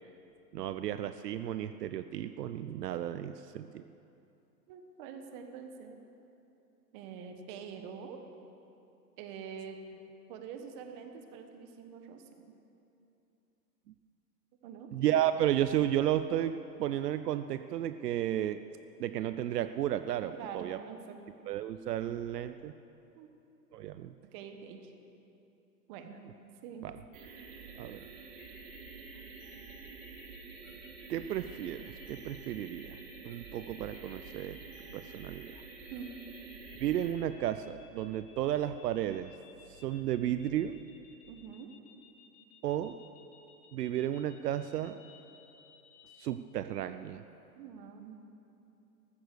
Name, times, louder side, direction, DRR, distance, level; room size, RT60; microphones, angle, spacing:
voice 1, 0.5-3.8 14.9-18.6 19.0-20.8 21.5-22.7 23.7-24.1 26.8-27.0 27.8-28.0 31.1-33.0 33.2-34.6 34.9-35.6 36.8-39.3 39.7-40.8 42.6-43.0 43.7-45.0 46.2-47.2, right 11 dB, 70° right, 11 dB, 0.7 m, -33 dB
voice 2, 4.7-6.0 6.9-8.2 9.2-9.8 10.3-12.5 14.6-14.9 20.3-21.2 23.2-23.3 24.2-24.9 25.9-26.2 26.6-26.9 35.9-36.2 41.3-41.7 47.5-48.2, right 7 dB, 30° right, 6 dB, 1.3 m, -45 dB
sound 1, 27.1-37.1, right 5 dB, 50° right, 2.8 m, -48 dB
sound 2, 28.4-46.3, left 7 dB, 45° left, 1.6 m, -59 dB
14.5 x 13.5 x 6.7 m, 2.8 s
hypercardioid pair, 155°, 49 cm